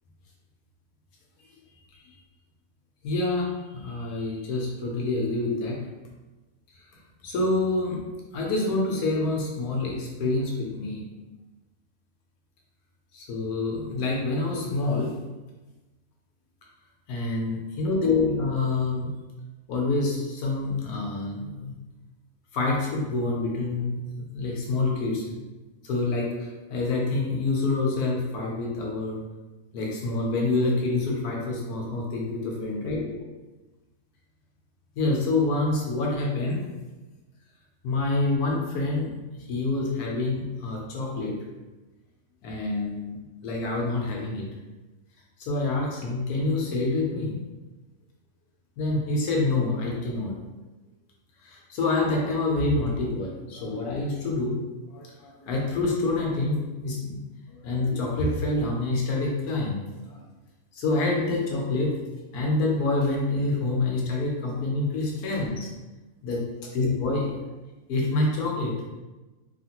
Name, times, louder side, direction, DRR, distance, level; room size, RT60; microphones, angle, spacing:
voice 1, 3.0-5.8 7.2-8.0 8.3-11.0 13.1-15.1 17.1-19.1 19.7-21.7 22.5-24.0 24.3-25.2 25.8-29.2 29.7-33.1 35.0-36.6 37.8-39.1 39.5-41.3 42.4-43.1 43.4-44.4 45.4-47.3 48.8-50.3 51.4-54.6 54.9-57.2 57.5-60.2 60.7-61.9 62.3-65.7 66.2-66.5 66.7-67.3 67.9-68.7, left 2 dB, 85° left, -2 dB, 1.2 m, -27 dB
3.3 x 2.5 x 2.8 m, 1.2 s
omnidirectional pair, 1.6 m